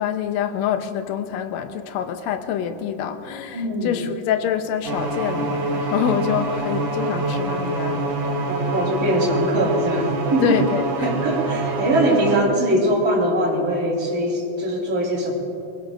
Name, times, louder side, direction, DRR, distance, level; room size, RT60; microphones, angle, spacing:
voice 1, 0.0-8.2 10.4-11.1, left 9 dB, 75° left, 8 dB, 1.7 m, -26 dB
voice 2, 3.5-4.0 8.5-10.6 11.0-15.3, right 1 dB, 25° right, -5 dB, 4.2 m, -22 dB
sound 1, 4.8-12.4, right 2 dB, 60° right, 3.1 m, -25 dB
25.0 x 22.5 x 2.6 m, 2.8 s
omnidirectional pair, 3.9 m